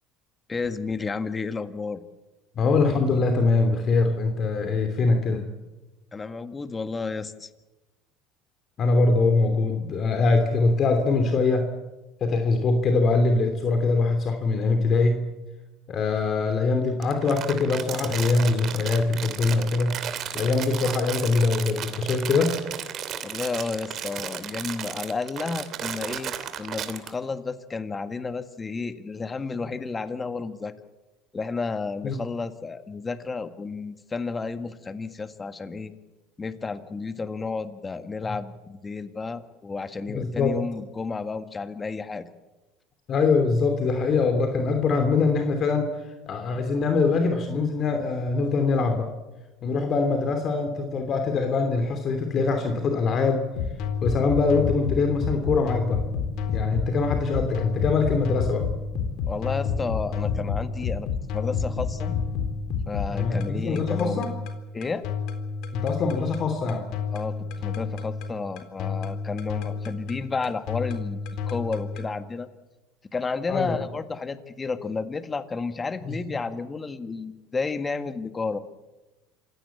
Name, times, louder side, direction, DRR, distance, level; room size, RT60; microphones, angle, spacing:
voice 1, 0.5-2.0 6.1-7.5 23.2-30.7 31.3-35.9 36.4-42.3 59.3-62.2 62.9-64.2 64.7-65.1 67.1-72.5 73.1-78.6, left 4 dB, 25° left, 10 dB, 1.8 m, -32 dB
voice 2, 2.6-5.4 8.8-11.7 12.2-15.3 15.9-20.0 20.3-22.6 29.6-29.7 32.0-32.2 40.1-40.6 43.1-45.9 46.3-49.1 49.6-53.4 54.0-56.0 56.5-58.7 63.1-64.3 65.7-66.8 73.5-73.7 76.1-76.2, left 3 dB, 45° left, 6 dB, 3.0 m, -23 dB
Crumpling crinkling, 17.0-27.1, right 9 dB, 50° right, 2.8 m, -34 dB
sound 1, 53.5-72.1, left 6 dB, 70° left, 3.8 m, -30 dB
27.0 x 17.0 x 8.6 m, 1.1 s
supercardioid pair, 90°, 0 cm